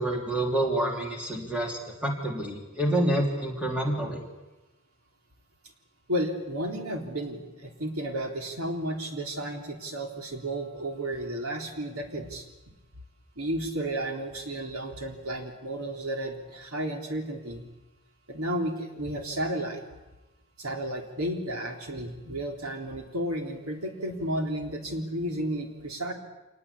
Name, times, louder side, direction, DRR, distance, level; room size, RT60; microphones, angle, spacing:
voice 1, 0.0-4.2, right 1 dB, 5° right, 0 dB, 3.3 m, -28 dB
voice 2, 6.1-12.5 13.4-17.6 18.3-19.8 20.6-26.1, right 1 dB, 80° right, 3 dB, 3.6 m, -32 dB
27.0 x 19.5 x 8.5 m, 1.1 s
head